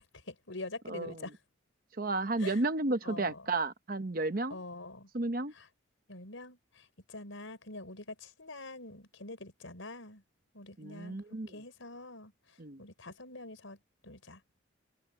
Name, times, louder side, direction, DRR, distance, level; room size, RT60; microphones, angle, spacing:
voice 1, 0.0-1.4 2.4-2.6 3.0-3.5 4.5-5.1 5.5-5.7 6.1-10.2 10.5-11.2 11.5-13.8 14.0-14.4, left 2 dB, 80° left, 4.9 m, -45 dB
voice 2, 2.0-4.6 5.1-5.5 10.8-11.5 12.6-12.8, right 2 dB, 45° right, 0.9 m, -32 dB
open air
head